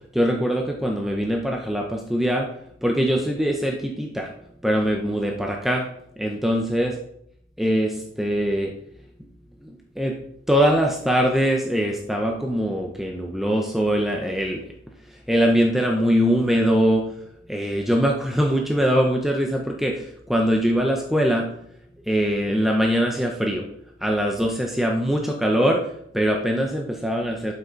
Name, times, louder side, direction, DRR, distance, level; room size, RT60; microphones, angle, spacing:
voice 1, 0.1-2.5 2.8-4.3 4.6-5.9 6.2-7.0 7.6-8.7 10.0-10.2 10.5-14.6 15.3-17.1 17.5-21.5 22.1-23.6 24.0-25.8 26.1-27.5, equal, ahead, 0 dB, 0.8 m, -22 dB
11.5 x 5.8 x 3.9 m, 0.71 s
head